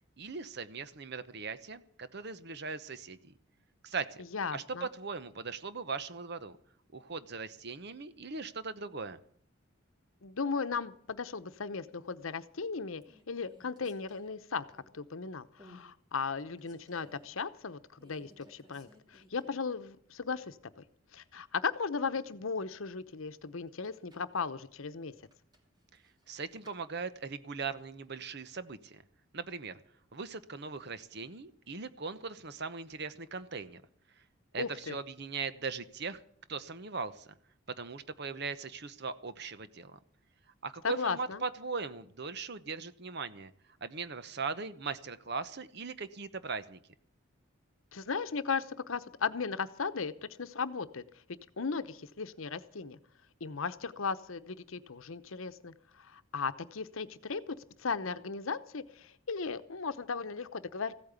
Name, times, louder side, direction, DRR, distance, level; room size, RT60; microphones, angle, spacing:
voice 1, 0.2-3.3 3.8-4.2 4.5-6.6 6.9-9.2 26.3-29.0 29.3-29.8 30.1-33.8 34.5-36.2 36.5-37.3 37.8-40.0 40.6-43.5 43.8-46.8, right 4 dB, 55° right, 13 dB, 1.0 m, -39 dB
voice 2, 4.3-4.9 10.2-14.6 14.9-20.6 21.1-25.1 34.6-35.0 40.8-41.4 47.9-50.1 50.4-51.0 51.6-53.0 53.4-60.9, left 5 dB, 80° left, 12 dB, 0.9 m, -36 dB
sound 1, 12.4-12.6 13.0-15.1 15.6-15.9 16.3-17.3 18.0-19.8 20.1-20.2 23.7-24.4 25.3-26.8, left 1 dB, 20° right, 2.7 m, -60 dB
15.5 x 8.9 x 8.2 m, 0.63 s
head